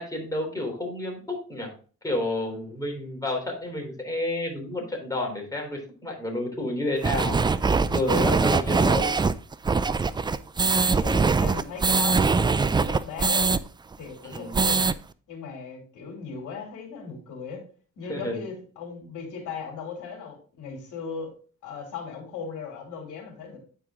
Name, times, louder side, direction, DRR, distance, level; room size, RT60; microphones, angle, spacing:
voice 1, 0.0-1.7 2.0-9.2 14.2-14.6 18.1-18.4, left 1 dB, 10° left, 0 dB, 3.3 m, -30 dB
sound 1, 7.0-13.6 13.9-14.0 14.3-14.9, right 4 dB, 15° right, 0.3 m, -22 dB
voice 2, 10.9-13.6 14.0-14.9 15.3-17.6 18.0-21.3 21.6-23.6, left 5 dB, 80° left, 2 dB, 2.9 m, -37 dB
9.1 x 4.7 x 3.6 m, 0.40 s
cardioid pair, 90°, 30 cm